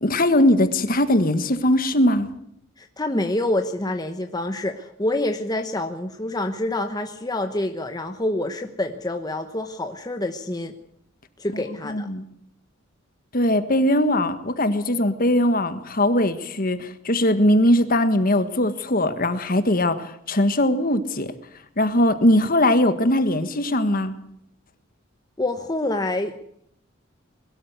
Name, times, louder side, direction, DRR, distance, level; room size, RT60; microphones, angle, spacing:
voice 1, 0.0-2.3 11.8-12.2 13.3-21.3 21.8-24.1, left 1 dB, 45° left, 10 dB, 1.6 m, -20 dB
voice 2, 2.8-10.7 11.4-12.1 25.4-26.3, left 1 dB, 20° left, 6 dB, 1.0 m, -27 dB
21.5 x 13.0 x 9.4 m, 0.73 s
head